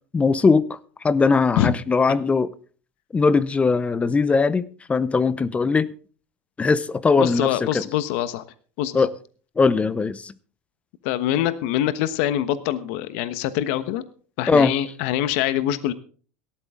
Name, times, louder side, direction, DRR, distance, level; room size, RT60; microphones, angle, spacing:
voice 1, 0.1-0.8 1.0-2.5 3.1-5.9 6.6-7.8 8.9-9.1 9.6-10.3 14.5-14.7, left 4 dB, 15° left, 0.7 m, -20 dB
voice 2, 7.2-8.4 8.8-9.1 11.0-14.0 14.4-15.9, left 12 dB, 65° left, 1.2 m, -24 dB
17.5 x 13.0 x 3.7 m
supercardioid pair, 120°, 8 cm